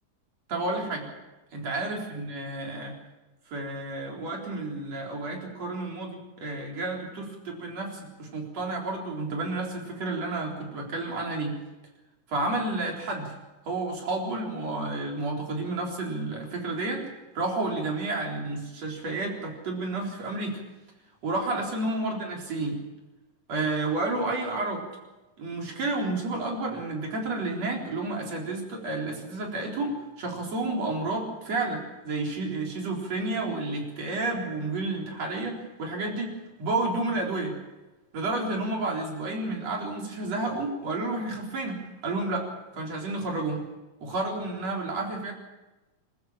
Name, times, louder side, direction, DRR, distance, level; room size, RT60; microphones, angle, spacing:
voice 1, 0.5-1.1 1.5-3.0 3.5-11.6 12.3-13.3 13.6-17.0 17.3-20.6 21.2-22.8 23.5-24.9 25.4-36.3 36.6-37.6 38.1-43.6 44.0-45.3, right 2 dB, 50° right, 0 dB, 5.1 m, -31 dB
26.5 x 14.5 x 7.3 m, 1.1 s
omnidirectional pair, 3.8 m